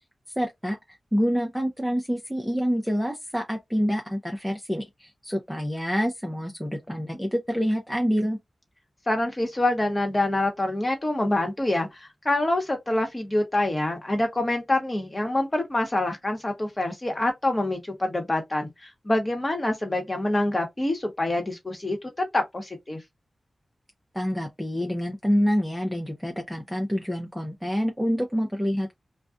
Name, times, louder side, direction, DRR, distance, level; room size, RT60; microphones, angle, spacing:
voice 1, 0.4-0.8 1.1-8.4 24.1-28.9, equal, ahead, 0.5 m, -27 dB
voice 2, 9.1-23.0, left 1 dB, 30° left, 1.1 m, -26 dB
2.4 x 2.2 x 2.4 m
wide cardioid pair, 70°, 0 cm